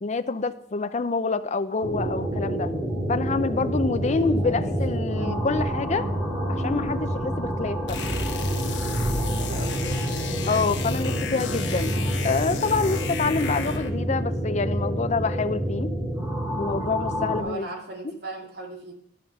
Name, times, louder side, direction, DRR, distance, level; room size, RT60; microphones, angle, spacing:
voice 1, 0.0-2.7 3.1-6.1 6.5-8.0 10.5-11.9 12.2-15.9 16.6-17.7, left 4 dB, 40° left, 11 dB, 0.5 m, -27 dB
sound 1, 1.8-17.4, right 1 dB, 15° right, 2.5 m, -28 dB
voice 2, 4.1-4.7 9.2-10.1 17.4-18.9, right 2 dB, 60° right, 0 dB, 2.4 m, -39 dB
sound 2, 7.9-14.0, left 3 dB, 70° left, 1.2 m, -32 dB
12.0 x 5.7 x 5.3 m, 0.70 s
head